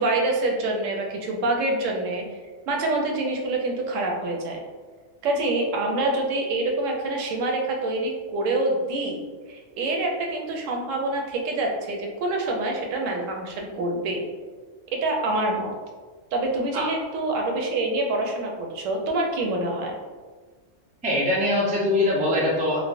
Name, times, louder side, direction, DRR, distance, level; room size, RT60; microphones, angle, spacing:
voice 1, 0.0-2.2 2.7-4.6 5.2-9.2 9.5-14.2 14.9-15.7 16.3-19.9, right 2 dB, 85° right, 1 dB, 0.9 m, -26 dB
voice 2, 21.0-22.8, left 1 dB, 10° right, -6 dB, 0.3 m, -22 dB
3.2 x 2.0 x 2.5 m, 1.4 s
omnidirectional pair, 1.3 m